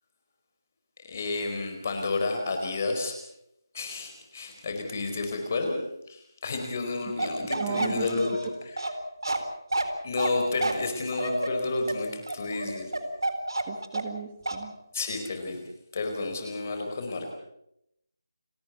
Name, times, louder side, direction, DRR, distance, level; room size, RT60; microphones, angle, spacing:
voice 1, 1.0-3.2 3.7-5.8 6.1-8.5 10.0-12.9 14.9-15.6 15.9-17.3, left 3 dB, 35° left, 4 dB, 4.6 m, -31 dB
Bark, 7.2-14.2 14.5-14.6, right 2 dB, 85° right, 4.0 m, -30 dB
voice 2, 7.4-8.2 13.7-14.7, right 8 dB, 20° right, 9 dB, 2.0 m, -36 dB
30.0 x 14.0 x 8.2 m, 0.80 s
figure-of-eight pair, 165°, 2 cm